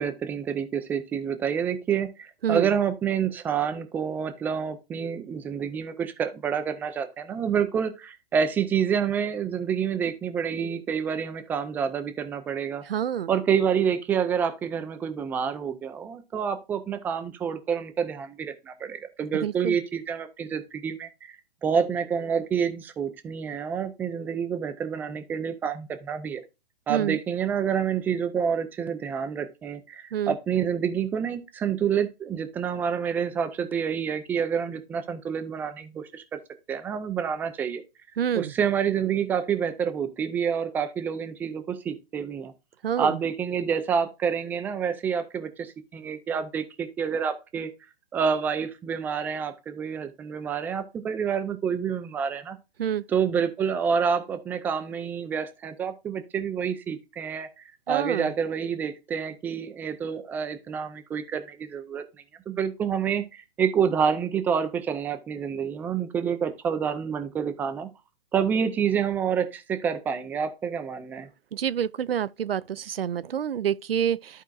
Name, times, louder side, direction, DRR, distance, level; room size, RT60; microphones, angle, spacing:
voice 1, 0.0-12.8 13.3-26.4 26.9-36.4 36.7-37.8 38.3-42.5 43.0-47.7 48.1-52.6 53.1-62.0 62.5-67.9 68.3-71.3, right 7 dB, 5° right, 0.3 m, -28 dB
voice 2, 2.4-2.7 12.8-13.3 19.3-19.8 26.9-27.2 30.1-30.4 38.2-38.5 42.8-43.2 52.8-53.0 57.9-58.3 71.5-74.4, right 9 dB, 75° right, 0.5 m, -28 dB
13.5 x 4.5 x 2.4 m
figure-of-eight pair, 120°, 30 cm